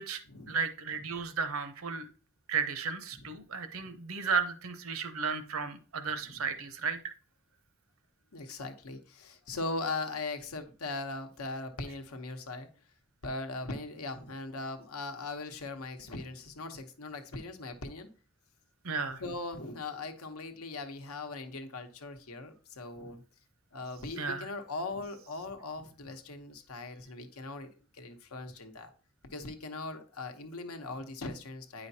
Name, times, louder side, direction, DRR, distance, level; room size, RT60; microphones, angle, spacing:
voice 1, 0.5-2.1 2.5-7.0 18.8-19.2 24.2-24.5, right 5 dB, 65° right, 10 dB, 0.7 m, -34 dB
voice 2, 8.3-12.7 13.2-18.1 19.2-23.2 23.7-28.9 29.3-31.9, left 3 dB, 80° left, 7 dB, 0.9 m, -40 dB
9.0 x 5.0 x 2.8 m, 0.39 s
head